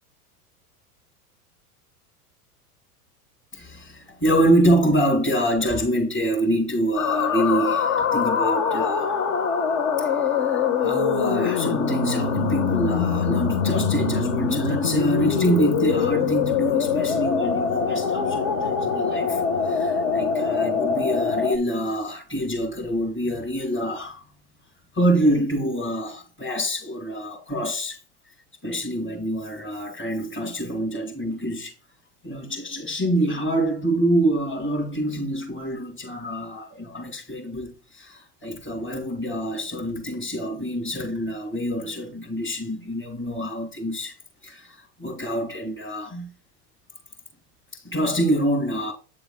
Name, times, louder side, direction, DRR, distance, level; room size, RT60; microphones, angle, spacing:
voice 1, 3.5-9.1 10.0-24.2 24.9-28.0 28.6-31.7 32.2-44.2 44.4-46.3 47.7-48.9, right 1 dB, 25° left, 2.4 m, -26 dB
sound 1, 7.0-21.6, left 6 dB, 60° left, 1.4 m, -23 dB
9.0 x 6.8 x 2.2 m
hypercardioid pair, 110°, 46 cm